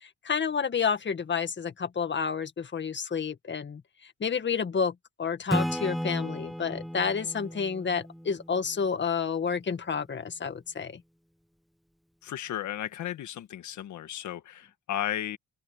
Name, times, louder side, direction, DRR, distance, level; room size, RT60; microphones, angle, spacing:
voice 1, 0.0-11.0, left 6 dB, 35° left, 1.9 m, -30 dB
Acoustic guitar / Strum, 5.5-9.1, equal, ahead, 1.2 m, -34 dB
voice 2, 12.2-15.4, left 11 dB, 75° left, 1.7 m, -34 dB
open air
cardioid pair, 90°, 30 cm